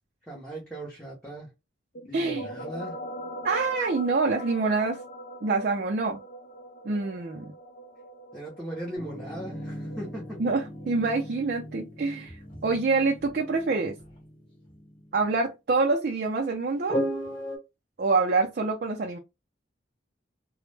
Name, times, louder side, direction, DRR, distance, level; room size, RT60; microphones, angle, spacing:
voice 1, 0.3-1.5 2.0-3.0 8.3-10.4, right 1 dB, 5° left, 0.6 m, -38 dB
sound 1, 1.9-11.3, equal, 50° left, 0.4 m, -42 dB
voice 2, 2.1-2.5 3.4-5.0 5.4-6.2 6.8-7.5 10.4-12.4 12.6-14.0 15.1-17.0 18.0-19.2, right 3 dB, 50° right, 0.4 m, -26 dB
sound 2, 8.9-15.3 16.9-17.6, equal, 30° left, 1.0 m, -37 dB
2.1 x 2.0 x 3.1 m
head